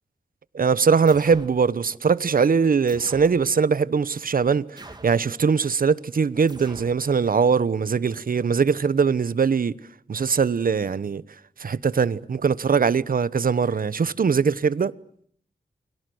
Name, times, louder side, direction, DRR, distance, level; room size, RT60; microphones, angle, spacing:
voice 1, 0.5-9.8 10.1-11.2 11.6-14.9, right 5 dB, 75° right, 1.1 m, -21 dB
sound 1, 1.1-1.6 2.9-3.4 4.8-5.3 6.5-7.0, right 2 dB, 30° right, 2.9 m, -44 dB
29.5 x 23.0 x 8.0 m
wide cardioid pair, 85°, 15 cm